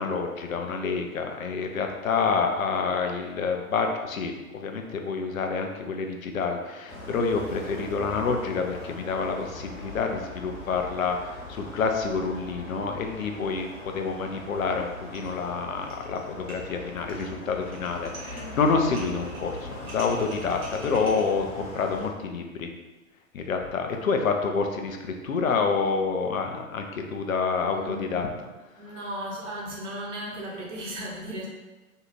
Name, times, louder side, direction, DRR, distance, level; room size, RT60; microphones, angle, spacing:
voice 1, 0.0-22.7 23.3-28.3, left 4 dB, 75° left, 4 dB, 0.5 m, -28 dB
sound 1, 6.9-22.1, left 2 dB, 55° left, 0.9 m, -41 dB
sound 2, 15.1-15.4 15.7-16.2 16.5-21.2, right 2 dB, 25° right, 0.6 m, -45 dB
voice 2, 18.3-18.7 20.8-21.2 23.9-24.1 27.5-28.3 28.8-31.5, equal, 60° right, -3 dB, 1.0 m, -37 dB
2.7 x 2.3 x 3.0 m, 1.1 s
figure-of-eight pair, 105°, 42 cm